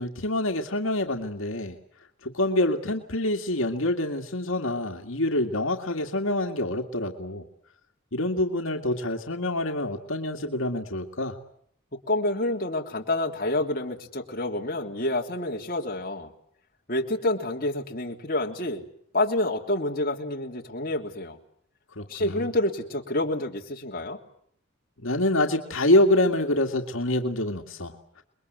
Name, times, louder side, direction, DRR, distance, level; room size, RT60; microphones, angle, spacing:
voice 1, 0.0-1.8 2.2-7.4 8.1-11.4 22.0-22.5 25.0-28.0, left 1 dB, 75° left, 3 dB, 2.1 m, -26 dB
voice 2, 12.1-16.3 16.9-18.8 19.1-21.4 22.1-24.2, left 1 dB, 45° left, 1 dB, 3.2 m, -28 dB
30.0 x 22.0 x 8.1 m, 0.66 s
head